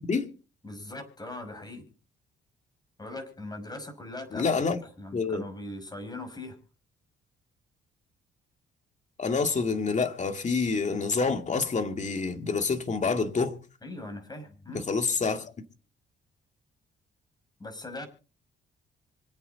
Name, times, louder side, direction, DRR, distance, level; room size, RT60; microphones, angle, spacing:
voice 1, 0.6-1.8 3.0-6.6 13.8-14.9 17.6-18.1, left 2 dB, 20° left, 5.8 m, -40 dB
voice 2, 4.3-4.8 5.1-5.4 9.2-13.6 14.7-15.5, left 4 dB, 35° left, 2.4 m, -27 dB
26.0 x 8.8 x 4.1 m
cardioid pair, 90°, 20 cm